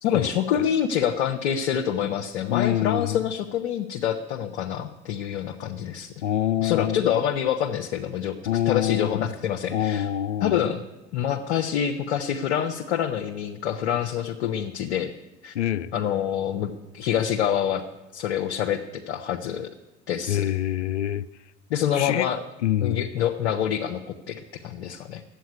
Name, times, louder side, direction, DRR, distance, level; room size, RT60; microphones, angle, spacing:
voice 1, 0.0-6.1 6.6-8.4 8.7-10.1 10.4-10.8 11.1-15.1 15.4-15.5 15.9-17.8 18.1-19.7 20.1-20.4 21.7-22.4 22.8-25.2, left 9 dB, 75° left, 0.9 m, -26 dB
voice 2, 2.5-3.2 6.2-7.1 8.5-9.3 9.7-10.6 15.5-15.9 20.3-21.2 22.0-22.3 22.6-23.0, left 11 dB, 90° left, 0.5 m, -25 dB
11.5 x 8.2 x 9.5 m
hypercardioid pair, 65°, 34 cm